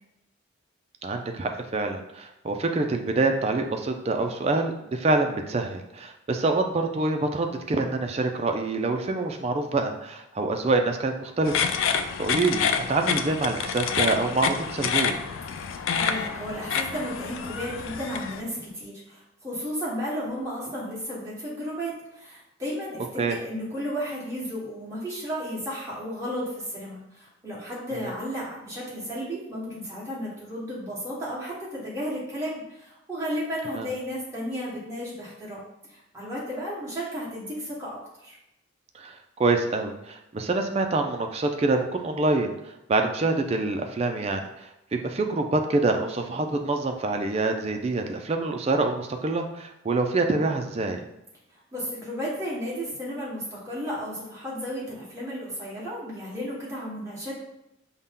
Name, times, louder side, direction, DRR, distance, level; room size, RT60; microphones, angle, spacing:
voice 1, 1.0-15.2 23.2-23.4 33.7-33.9 38.9-51.0, right 3 dB, 30° right, 5 dB, 0.3 m, -26 dB
sound 1, 11.5-18.4, left 6 dB, 75° left, 0.3 m, -28 dB
voice 2, 15.7-35.6 35.9-38.4 51.7-57.3, equal, 15° right, -7 dB, 1.4 m, -33 dB
5.4 x 2.1 x 3.6 m, 0.89 s
head